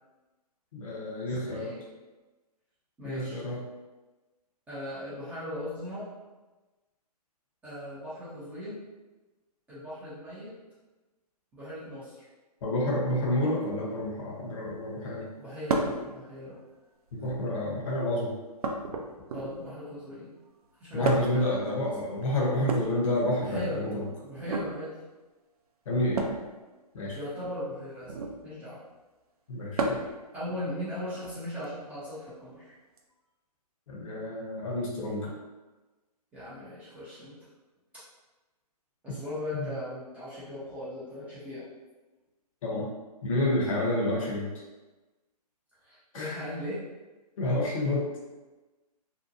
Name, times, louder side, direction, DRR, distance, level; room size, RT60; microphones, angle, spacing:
voice 1, 0.7-1.7 3.0-3.6 12.6-15.3 17.1-18.3 20.9-24.0 25.9-26.3 26.9-27.2 29.5-30.0 33.9-35.3 39.1-39.2 39.5-39.7 42.6-42.9 43.2-44.5 46.1-46.4 47.4-48.1, left 1 dB, 55° left, -3 dB, 0.9 m, -29 dB
voice 2, 1.2-1.8 3.0-3.4 4.7-6.1 7.6-8.8 9.7-10.5 11.5-12.3 15.4-16.6 19.3-20.3 20.8-21.6 23.4-23.8 24.2-24.9 27.1-28.1 28.4-28.8 30.3-32.7 36.3-37.3 39.0-41.6 45.8-46.8, left 1 dB, 5° right, -12 dB, 0.5 m, -38 dB
sound 1, 15.7-16.0 17.1-17.6 18.6-19.7 21.0-21.5 22.6-23.7 24.4-24.7 26.1-26.5 28.0-28.4 29.8-30.2 31.6-31.7 33.0-33.1, right 2 dB, 65° right, 0.4 m, -31 dB
2.7 x 2.1 x 2.6 m, 1.2 s
hypercardioid pair, 140°, 21 cm